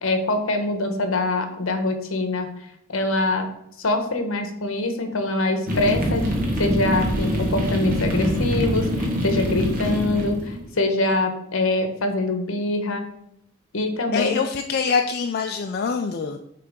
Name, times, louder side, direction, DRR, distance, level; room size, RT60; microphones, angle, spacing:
voice 1, 0.0-2.5 2.9-3.5 3.8-6.3 6.6-13.1 13.7-14.4, left 2 dB, 65° left, 6 dB, 1.0 m, -24 dB
sound 1, 5.7-10.7, equal, 40° right, 1.3 m, -24 dB
voice 2, 14.1-16.4, left 5 dB, 45° left, 4 dB, 0.4 m, -24 dB
6.7 x 3.4 x 5.1 m, 0.77 s
head